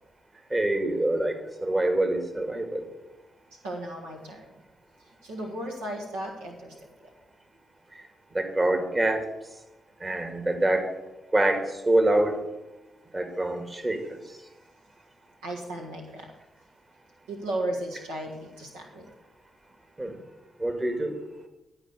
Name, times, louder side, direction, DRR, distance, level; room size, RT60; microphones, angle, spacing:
voice 1, 0.5-2.9 8.3-9.3 10.0-10.9 11.3-12.4 13.1-14.2 20.0-20.2 20.6-21.2, right 1 dB, 30° right, 5 dB, 2.0 m, -25 dB
voice 2, 3.6-4.4 5.2-6.7 15.4-16.3 17.3-19.1, right 1 dB, 90° right, -1 dB, 1.5 m, -35 dB
11.5 x 4.9 x 7.9 m, 1.0 s
hypercardioid pair, 45°, 0 cm